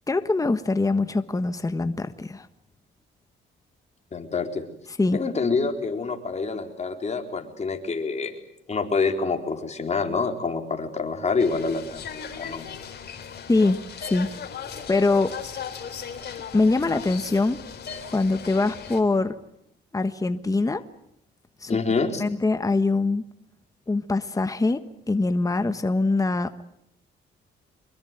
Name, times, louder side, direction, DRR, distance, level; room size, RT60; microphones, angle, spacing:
voice 1, 0.1-2.5 5.0-5.2 13.5-14.3 14.9-15.4 16.5-17.6 18.1-19.4 19.9-20.8 21.6-21.7 22.2-23.2 23.9-24.8 25.1-26.5, left 3 dB, 15° left, 10 dB, 1.3 m, -23 dB
voice 2, 4.1-4.7 5.1-8.3 8.7-12.7 21.7-22.2, left 4 dB, 35° left, 4 dB, 4.3 m, -27 dB
sound 1, 11.4-19.0, left 7 dB, 55° left, 4.1 m, -37 dB
25.5 x 22.0 x 9.1 m, 0.75 s
cardioid pair, 90°, 20 cm